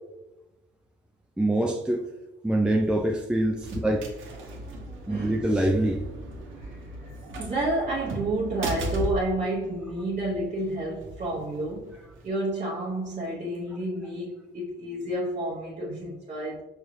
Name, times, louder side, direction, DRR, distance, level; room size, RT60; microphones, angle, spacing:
voice 1, 1.4-2.1 2.4-4.0 5.1-6.0, right 1 dB, 5° right, 2 dB, 0.3 m, -24 dB
sound 1, 2.7-12.3, right 1 dB, 80° right, 1.0 m, -38 dB
voice 2, 5.1-5.4 6.6-6.8 7.0-11.9 12.2-16.6, right 1 dB, 40° right, -6 dB, 0.9 m, -30 dB
5.5 x 2.4 x 3.1 m, 1.0 s
cardioid pair, 90°, 20 cm